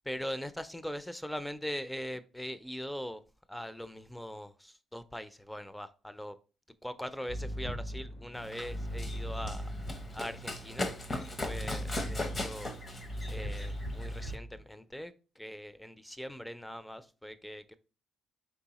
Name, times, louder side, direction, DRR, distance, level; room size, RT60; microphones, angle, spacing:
voice 1, 0.1-3.2 3.5-6.3 6.8-9.7 10.1-12.7 13.3-17.8, equal, 5° left, 0.4 m, -41 dB
sound 1, 7.3-10.3 11.4-14.6, equal, 85° left, 1.3 m, -38 dB
Run, 8.3-14.4, left 1 dB, 35° left, 0.7 m, -39 dB
4.6 x 3.4 x 2.9 m
cardioid pair, 90°, 0 cm